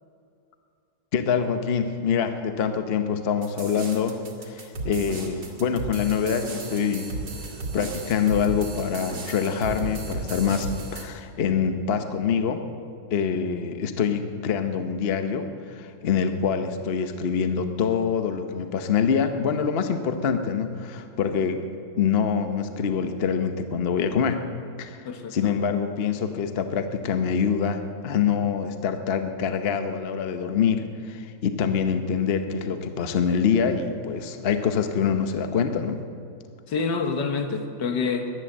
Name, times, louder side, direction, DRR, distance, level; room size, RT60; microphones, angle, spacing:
voice 1, 1.1-7.1 7.7-12.6 13.1-21.6 22.0-24.4 24.8-36.0, left 6 dB, 50° left, 8 dB, 0.8 m, -25 dB
sound 1, 3.4-11.0, right 3 dB, 75° right, 2.6 m, -34 dB
voice 2, 25.1-25.5 36.7-38.3, left 4 dB, 70° left, 6 dB, 1.7 m, -27 dB
14.0 x 11.5 x 7.8 m, 2.5 s
omnidirectional pair, 2.0 m